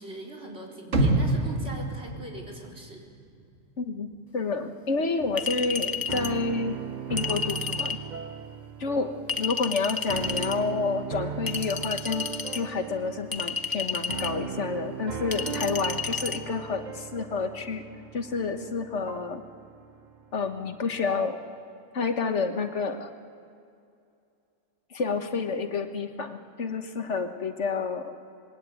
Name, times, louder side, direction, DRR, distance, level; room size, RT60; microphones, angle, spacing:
voice 1, 0.0-3.0, right 1 dB, 60° right, 0 dB, 4.5 m, -41 dB
sound 1, 0.9-3.1 3.4-3.5, right 2 dB, 90° right, 2.1 m, -26 dB
voice 2, 3.8-4.1 4.3-6.8 7.1-8.0 8.8-12.3 12.5-17.8 18.1-19.4 20.3-21.4 21.9-23.1 24.9-28.1, left 4 dB, 75° left, 7 dB, 1.6 m, -29 dB
sound 2, 5.2-21.4, right 6 dB, 40° right, 1.0 m, -38 dB
Chink clink, 5.4-6.4 7.2-8.0 9.3-10.6 11.5-12.6 13.3-14.4 15.3-16.4, left 5 dB, 20° left, 0.9 m, -31 dB
25.5 x 21.5 x 9.1 m, 2.5 s
omnidirectional pair, 1.2 m